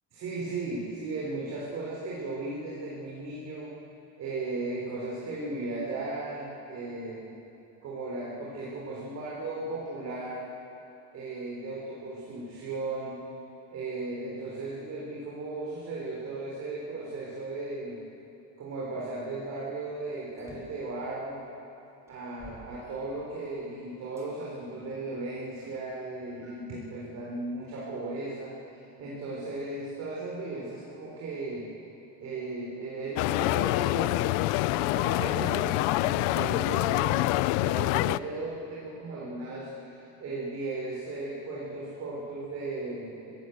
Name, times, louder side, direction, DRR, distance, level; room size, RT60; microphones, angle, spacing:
voice 1, 0.1-3.7 4.2-7.2 7.8-10.5 11.1-13.2 13.7-18.0 18.6-21.4 22.1-31.7 32.2-34.3 34.6-37.3 37.6-43.3, right 2 dB, 40° right, -4 dB, 4.3 m, -36 dB
sound 1, 20.4-20.9 21.5-21.6 22.1-23.5 24.2-24.3 25.0-26.1, right 1 dB, 5° right, 5.3 m, -52 dB
sound 2, 33.2-38.2, left 19 dB, 85° left, 0.6 m, -26 dB
22.5 x 17.0 x 8.1 m, 2.8 s
cardioid pair, 140°, 37 cm